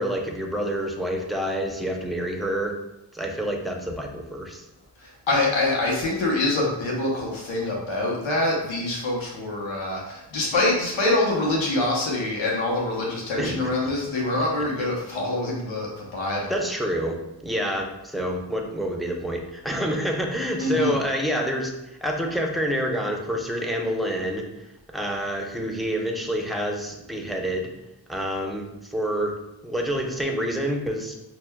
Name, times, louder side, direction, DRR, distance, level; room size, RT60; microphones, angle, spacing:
voice 1, 0.0-2.8 3.1-4.6 13.4-13.6 14.8-14.9 16.5-17.2 17.4-24.5 24.9-27.7 28.1-29.3 29.6-31.1, equal, ahead, 1 dB, 0.7 m, -27 dB
voice 2, 5.0-16.6 20.6-21.0, left 2 dB, 85° left, -3 dB, 0.9 m, -25 dB
5.9 x 2.2 x 2.2 m, 0.93 s
cardioid pair, 45°, 45 cm